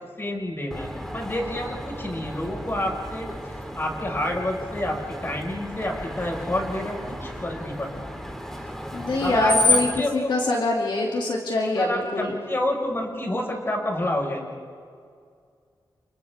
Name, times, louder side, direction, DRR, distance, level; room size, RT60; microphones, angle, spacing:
voice 1, 0.2-8.0 9.2-10.3 11.7-14.4, left 1 dB, 30° left, 0 dB, 5.5 m, -29 dB
Screech, 0.7-10.0, left 1 dB, 5° left, 2.5 m, -31 dB
voice 2, 8.9-12.4, left 2 dB, 75° left, -2 dB, 2.8 m, -24 dB
30.0 x 30.0 x 3.7 m, 2.2 s
cardioid pair, 80°, 8 cm